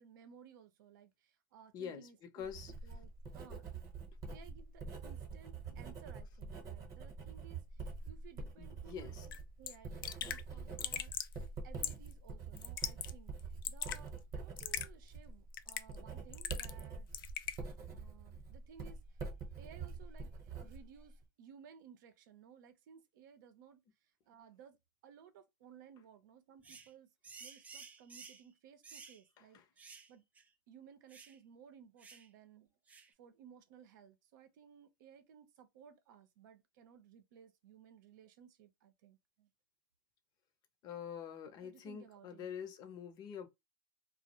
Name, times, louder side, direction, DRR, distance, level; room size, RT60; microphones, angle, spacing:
voice 1, 0.0-3.6 4.3-11.1 11.6-13.3 13.7-17.1 17.9-23.8 24.3-24.8 25.0-27.1 27.4-30.2 30.7-32.7 33.2-39.5 41.6-42.5, right 8 dB, 65° right, 0.7 m, -59 dB
voice 2, 1.7-2.7 8.6-9.3 29.5-29.6 40.8-43.5, left 8 dB, 35° left, 0.7 m, -46 dB
Writing, 2.4-21.2, right 4 dB, 30° right, 0.9 m, -46 dB
Raindrop / Drip, 9.3-9.4 9.7-9.8 10.0-10.4 10.8-11.3 11.8-12.1 12.6-13.1 13.4-14.0 14.6-14.9 15.5-16.0 16.3-16.8 17.1-17.6, left 10 dB, 80° left, 0.4 m, -39 dB
sound 1, 26.6-26.9 27.2-28.5 28.8-29.2 29.8-30.1 30.4-30.5 31.1-31.4 32.0-32.3 32.9-33.1, right 5 dB, 15° right, 0.3 m, -53 dB
2.2 x 2.1 x 2.7 m
hypercardioid pair, 125°, 11 cm